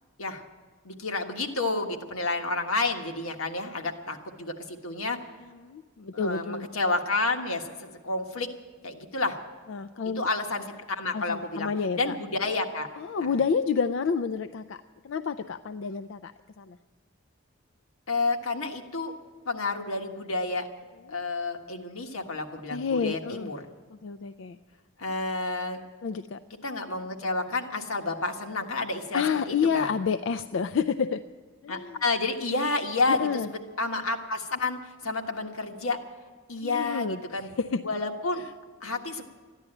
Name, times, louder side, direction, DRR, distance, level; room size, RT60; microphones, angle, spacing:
voice 1, 0.8-5.2 6.1-7.8 8.0-8.5 8.8-9.4 10.2-11.7 12.0-12.9 13.2-13.3 18.1-19.1 19.4-20.7 21.1-23.6 25.0-25.8 26.6-29.9 31.7-36.0 36.5-37.5 37.8-38.4 38.8-39.2, left 3 dB, 90° left, 4 dB, 1.5 m, -30 dB
voice 2, 5.6-6.7 9.7-10.3 11.1-12.2 13.0-16.8 22.7-23.5 24.0-24.6 26.0-26.4 29.1-31.2 31.6-32.0 33.1-33.5 36.6-37.8 38.4-38.5, left 6 dB, 65° left, 11 dB, 0.4 m, -29 dB
14.0 x 10.5 x 9.0 m, 1.5 s
head